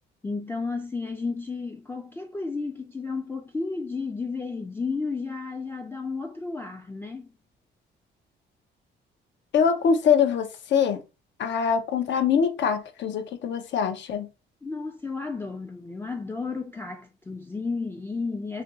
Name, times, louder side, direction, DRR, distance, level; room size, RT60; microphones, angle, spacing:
voice 1, 0.2-7.3 14.6-18.6, left 4 dB, 10° left, 0.3 m, -32 dB
voice 2, 9.5-11.0 11.4-14.3, left 7 dB, 65° left, 0.6 m, -23 dB
2.5 x 2.3 x 3.8 m
cardioid pair, 90°, 20 cm